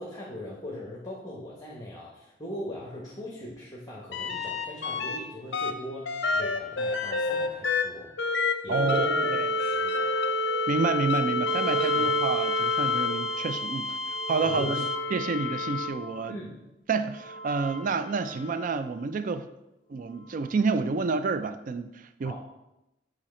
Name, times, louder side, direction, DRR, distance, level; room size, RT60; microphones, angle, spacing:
voice 1, 0.0-8.1 8.6-9.3 9.5-10.1 11.9-12.1 14.4-14.8 16.3-16.6 22.2-22.3, left 1 dB, 20° left, -4 dB, 1.0 m, -40 dB
sound 1, 4.1-5.2 5.5-16.3 17.2-18.7 20.4-20.5, left 2 dB, 70° left, 0.6 m, -29 dB
voice 2, 8.7-9.5 10.7-14.9 15.1-16.4 16.9-19.5 19.9-22.3, right 4 dB, 45° right, 11 dB, 0.4 m, -29 dB
7.5 x 3.9 x 4.3 m, 0.90 s
head